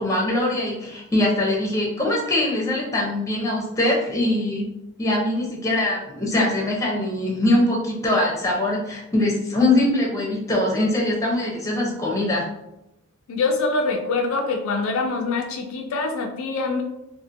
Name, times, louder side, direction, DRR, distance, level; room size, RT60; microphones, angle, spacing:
voice 1, 0.0-4.7 5.0-12.5, left 1 dB, 15° left, -2 dB, 0.5 m, -22 dB
voice 2, 13.3-16.8, left 3 dB, 65° left, 3 dB, 0.3 m, -24 dB
2.6 x 2.5 x 2.5 m, 0.88 s
head